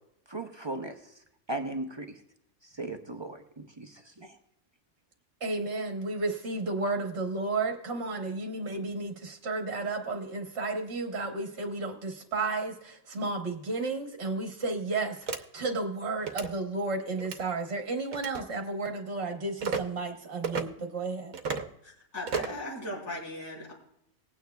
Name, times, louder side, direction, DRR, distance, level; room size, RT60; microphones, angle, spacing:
voice 1, 0.3-1.0 1.5-2.1 2.7-4.4, right 2 dB, 30° right, 4 dB, 0.5 m, -37 dB
voice 2, 5.4-21.3, right 3 dB, 50° right, 3 dB, 1.4 m, -32 dB
sound 1, 15.3-15.4 16.2-16.5 17.2-17.4 18.1-18.4 19.6-19.8 20.4-20.6 21.3-21.7 22.3-22.6, right 5 dB, 70° right, 1.2 m, -32 dB
voice 3, 21.8-23.7, left 1 dB, 80° left, -5 dB, 4.2 m, -38 dB
20.0 x 9.1 x 2.3 m, 0.77 s
omnidirectional pair, 1.5 m